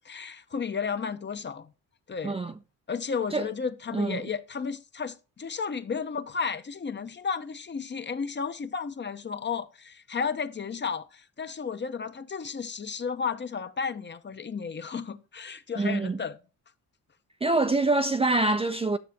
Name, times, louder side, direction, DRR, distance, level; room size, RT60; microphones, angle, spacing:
voice 1, 0.0-1.7 2.1-2.4 2.9-16.4, left 6 dB, 30° left, 0.7 m, -33 dB
voice 2, 2.2-2.5 3.3-3.5 3.9-4.2 15.8-16.2 17.4-19.0, right 2 dB, 15° right, 0.4 m, -25 dB
9.5 x 6.6 x 2.8 m
cardioid pair, 85°, 35 cm